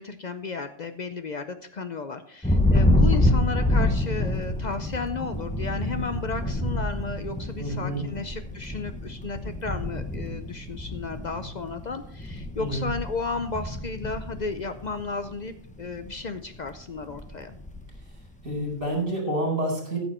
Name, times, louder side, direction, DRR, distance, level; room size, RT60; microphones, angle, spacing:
voice 1, 0.0-17.5, left 4 dB, 55° left, 9 dB, 0.4 m, -34 dB
Thunder, 2.4-15.3 15.7-16.2 16.5-18.0, left 1 dB, 5° left, 0.8 m, -27 dB
voice 2, 7.6-8.0 12.6-12.9 18.4-20.0, right 1 dB, 55° right, 0 dB, 4.6 m, -28 dB
14.0 x 7.1 x 4.3 m, 0.64 s
omnidirectional pair, 1.5 m